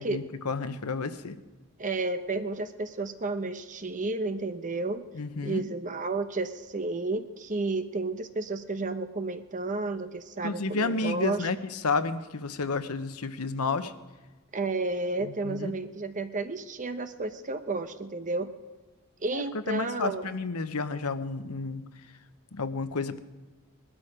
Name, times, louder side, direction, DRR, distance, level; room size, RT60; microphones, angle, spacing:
voice 1, 0.0-1.4 5.1-5.7 10.4-13.9 15.2-15.7 19.3-21.8 22.5-23.2, left 3 dB, 85° left, 11 dB, 0.9 m, -31 dB
voice 2, 1.8-5.1 5.4-11.5 14.5-18.5 19.2-20.3, right 3 dB, 35° right, 9 dB, 0.9 m, -32 dB
20.0 x 12.5 x 5.0 m, 1.2 s
head